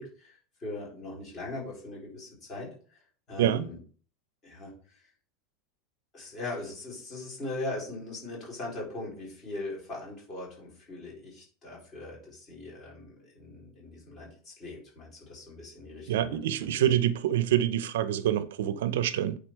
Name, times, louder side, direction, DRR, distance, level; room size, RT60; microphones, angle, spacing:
voice 1, 0.0-3.0 3.3-3.8 4.4-5.0 6.1-16.9, left 2 dB, 20° left, 4.1 m, -40 dB
voice 2, 16.1-19.4, right 11 dB, 80° right, 0.6 m, -26 dB
9.2 x 4.1 x 4.6 m
supercardioid pair, 175°, 0 cm